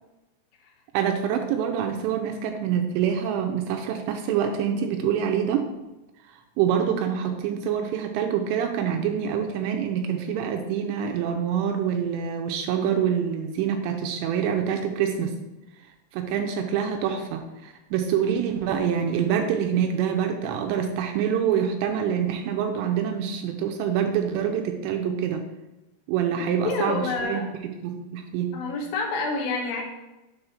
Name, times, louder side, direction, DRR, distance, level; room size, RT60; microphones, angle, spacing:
voice 1, 0.9-5.6 6.6-15.3 16.1-25.4 26.1-27.4 27.8-28.5, right 8 dB, 80° right, 4 dB, 2.7 m, -26 dB
voice 2, 26.4-27.5 28.5-29.8, left 4 dB, 65° left, -1 dB, 2.7 m, -28 dB
8.0 x 3.9 x 5.6 m, 1.0 s
omnidirectional pair, 5.4 m